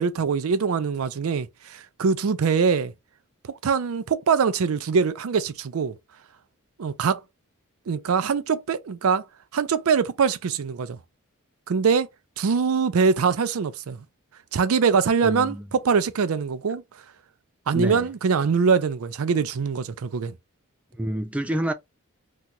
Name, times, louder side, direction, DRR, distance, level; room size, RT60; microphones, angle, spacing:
voice 1, 0.0-2.9 3.6-5.9 6.8-7.2 7.9-9.2 9.5-11.0 11.7-12.1 12.4-14.0 14.5-16.8 17.7-20.3, right 5 dB, 70° right, 0.4 m, -23 dB
voice 2, 15.2-15.7 17.7-18.1 20.9-21.7, right 1 dB, 5° right, 0.3 m, -28 dB
2.9 x 2.3 x 3.8 m
head